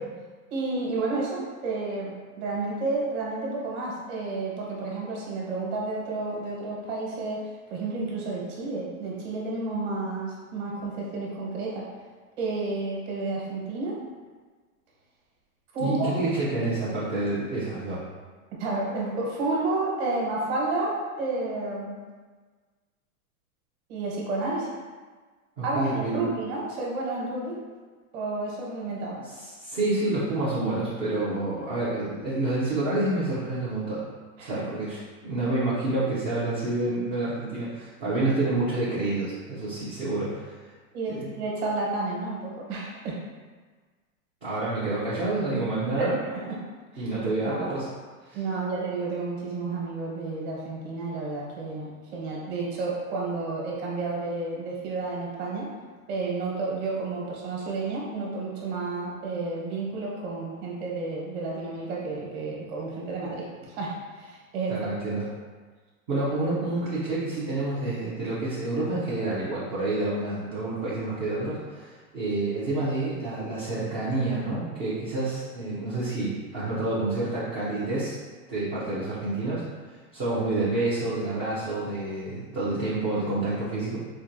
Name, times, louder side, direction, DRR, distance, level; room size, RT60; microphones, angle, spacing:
voice 1, 0.5-11.8 12.4-13.9 15.7-16.2 18.6-22.0 23.9-24.7 25.6-27.6 28.1-29.2 34.4-34.6 40.9-43.2 46.0-46.6 46.9-47.0 47.4-47.8 48.3-55.7 56.1-64.8, right 3 dB, 50° right, -3 dB, 1.2 m, -31 dB
voice 2, 15.8-18.0 25.6-26.3 29.2-34.0 34.4-40.6 41.1-41.3 44.4-46.2 47.0-47.9 48.2-48.4 64.7-65.3 66.1-78.2 78.5-84.0, right 2 dB, 20° right, -10 dB, 0.3 m, -28 dB
4.4 x 2.5 x 2.5 m, 1.4 s
supercardioid pair, 140°, 43 cm